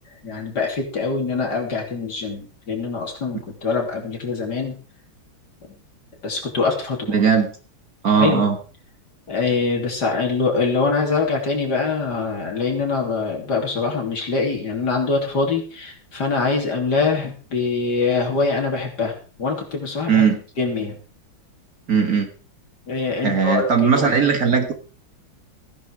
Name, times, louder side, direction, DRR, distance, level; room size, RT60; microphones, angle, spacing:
voice 1, 0.2-4.8 6.2-7.1 8.1-8.5 9.3-20.3 20.6-21.0 22.9-24.1, left 4 dB, 50° left, 1 dB, 3.7 m, -24 dB
voice 2, 7.1-7.5 8.0-8.6 20.1-20.4 21.9-22.3 23.2-24.7, right 6 dB, 45° right, 6 dB, 1.9 m, -18 dB
15.5 x 10.0 x 4.8 m, 0.38 s
omnidirectional pair, 2.3 m